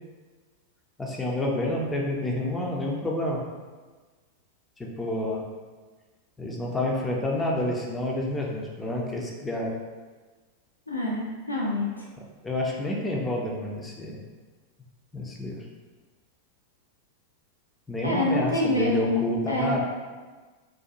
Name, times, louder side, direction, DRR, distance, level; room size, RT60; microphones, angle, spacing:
voice 1, 1.0-3.4 4.8-5.5 6.4-9.7 12.2-14.2 15.1-15.7 17.9-19.8, left 1 dB, 10° left, -2 dB, 0.4 m, -29 dB
voice 2, 10.9-12.1 18.0-19.8, left 1 dB, 85° left, -4 dB, 0.5 m, -26 dB
2.4 x 2.2 x 2.8 m, 1.4 s
figure-of-eight pair, 90°, 0 cm